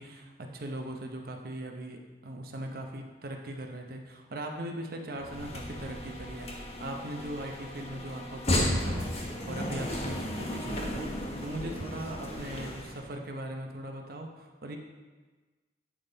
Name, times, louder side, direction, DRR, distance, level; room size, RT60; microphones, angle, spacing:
voice 1, 0.0-14.8, right 1 dB, 55° right, 3 dB, 0.8 m, -40 dB
sound 1, 5.2-13.1, left 1 dB, 35° left, 1.1 m, -34 dB
8.6 x 5.5 x 4.0 m, 1.3 s
head